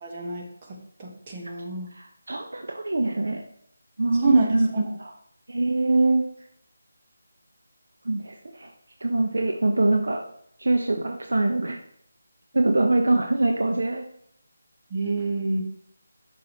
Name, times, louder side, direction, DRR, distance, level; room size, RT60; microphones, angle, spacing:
voice 1, 0.0-1.9 4.2-4.9 14.9-15.6, right 3 dB, 30° right, 0 dB, 1.5 m, -26 dB
voice 2, 1.9-3.4 4.0-4.7 5.0-5.1 5.5-6.2 8.0-8.7 9.0-10.2 10.6-11.8 12.5-14.0, right 2 dB, 75° right, 4 dB, 0.9 m, -23 dB
8.6 x 6.1 x 3.2 m, 0.67 s
figure-of-eight pair, 165°, 0 cm